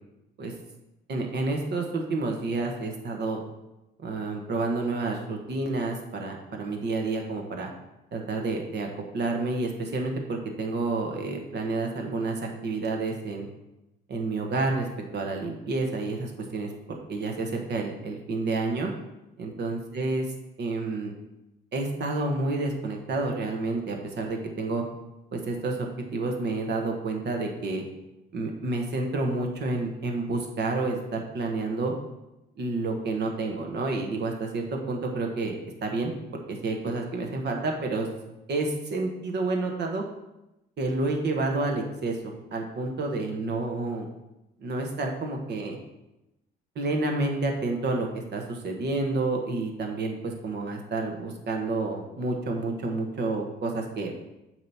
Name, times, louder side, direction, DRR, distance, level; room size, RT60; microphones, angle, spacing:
voice 1, 1.1-3.4 4.0-7.7 8.1-8.9 9.1-13.5 14.1-14.9 15.1-18.9 19.4-20.2 20.6-21.1 21.7-24.8 25.3-25.8 26.1-27.8 28.3-31.9 32.6-38.1 38.5-40.0 40.8-44.0 44.6-45.8 46.7-54.1, right 3 dB, 60° right, 2 dB, 1.2 m, -29 dB
7.4 x 3.0 x 5.5 m, 0.95 s
cardioid pair, 90°, 20 cm